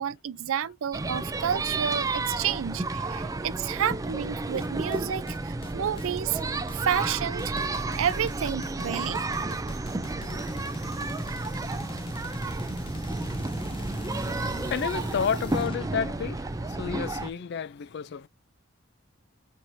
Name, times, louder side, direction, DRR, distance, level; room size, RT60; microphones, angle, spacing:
voice 1, 0.0-6.4 6.7-9.2, right 8 dB, 80° right, 0.4 m, -30 dB
sound 1, 0.9-17.3, right 3 dB, 15° right, 0.4 m, -32 dB
sound 2, 4.6-15.9, left 2 dB, 25° left, 0.7 m, -42 dB
voice 2, 14.0-18.3, left 7 dB, 55° left, 0.3 m, -32 dB
4.4 x 3.1 x 2.6 m
head